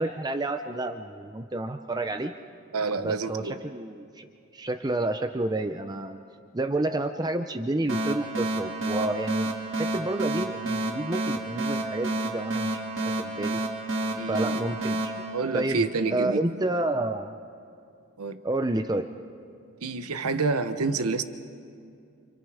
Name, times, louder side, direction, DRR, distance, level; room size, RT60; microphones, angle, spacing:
voice 1, 0.0-2.3 3.0-4.3 4.5-6.2 6.5-9.5 9.8-13.6 14.3-15.1 15.5-17.3 18.4-19.1, right 2 dB, 20° right, 8 dB, 0.5 m, -30 dB
voice 2, 2.7-3.5 14.1-14.6 15.3-16.6 18.2-18.4 19.8-21.2, right 3 dB, 90° right, 10 dB, 1.0 m, -28 dB
sound 1, 7.9-16.2, right 2 dB, 60° right, 2.0 m, -30 dB
29.5 x 27.0 x 4.9 m, 2.4 s
head